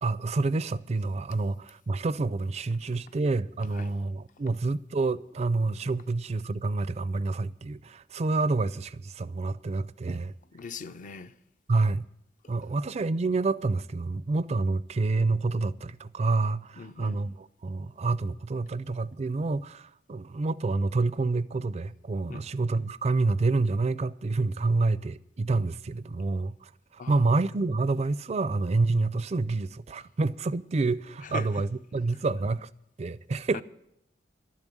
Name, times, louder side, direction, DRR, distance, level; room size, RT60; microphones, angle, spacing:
voice 1, 0.0-10.3 11.7-12.1 12.5-32.7 33.0-33.6, right 3 dB, 35° right, 0.4 m, -28 dB
voice 2, 10.5-11.3 16.8-17.2 22.3-22.4 27.0-27.3 31.2-31.6 33.5-33.6, left 3 dB, 45° left, 0.5 m, -39 dB
12.0 x 7.2 x 9.9 m
head